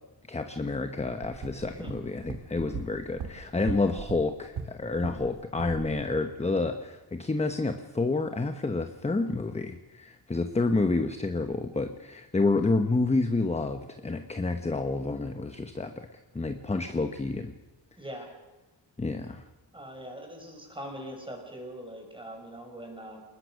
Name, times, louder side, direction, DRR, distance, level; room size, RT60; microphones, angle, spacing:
voice 1, 0.3-17.5 19.0-19.4, left 3 dB, 15° left, 7 dB, 1.0 m, -29 dB
sound 1, 1.2-5.3 5.6-5.9, right 6 dB, 80° right, 2.4 m, -39 dB
voice 2, 18.0-18.3 19.7-23.2, equal, 10° right, 2 dB, 5.6 m, -42 dB
27.5 x 20.5 x 6.4 m, 1.1 s
wide cardioid pair, 170°, 47 cm